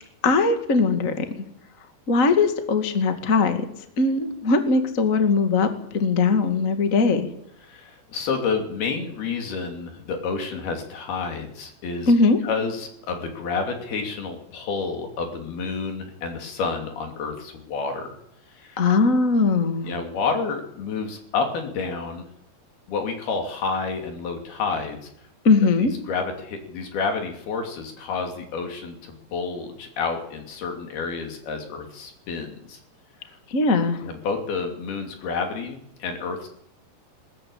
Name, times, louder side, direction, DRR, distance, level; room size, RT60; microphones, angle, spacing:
voice 1, 0.2-1.2 2.1-3.6 4.0-5.7 5.9-7.3 12.1-12.4 18.8-19.9 25.4-25.9 33.5-34.0, left 4 dB, 30° left, 7 dB, 1.6 m, -20 dB
voice 2, 7.6-12.1 12.4-18.1 18.5-18.9 19.8-22.3 22.9-25.1 25.8-32.8 33.2-33.4 34.0-36.5, left 4 dB, 70° left, 4 dB, 4.7 m, -29 dB
21.0 x 17.5 x 8.7 m, 0.74 s
omnidirectional pair, 4.7 m